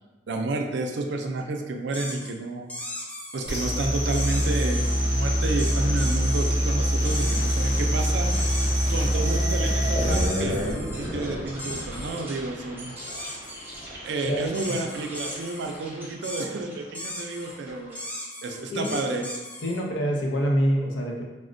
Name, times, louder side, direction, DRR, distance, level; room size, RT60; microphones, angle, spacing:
voice 1, 0.3-2.9 3.3-8.3 8.9-13.3 14.0-18.0 18.4-19.2, right 3 dB, 70° right, 4 dB, 0.4 m, -31 dB
sound 1, 1.9-2.3 2.7-3.7 4.1-5.0 5.6-6.5 7.0-7.9 8.3-9.2 10.1-11.1 11.6-12.2 13.0-13.8 14.5-15.8 16.2-16.5 16.9-17.6 17.9-19.8, left 1 dB, 10° left, 0.3 m, -37 dB
sound 2, 3.5-10.2, equal, 40° left, 0.7 m, -24 dB
sound 3, 6.5-6.8 7.2-7.6 8.0-8.1 8.9-18.0, equal, 10° right, 0.7 m, -34 dB
voice 2, 19.6-21.2, equal, 90° left, 0 dB, 0.6 m, -25 dB
4.1 x 2.1 x 2.5 m, 1.2 s
head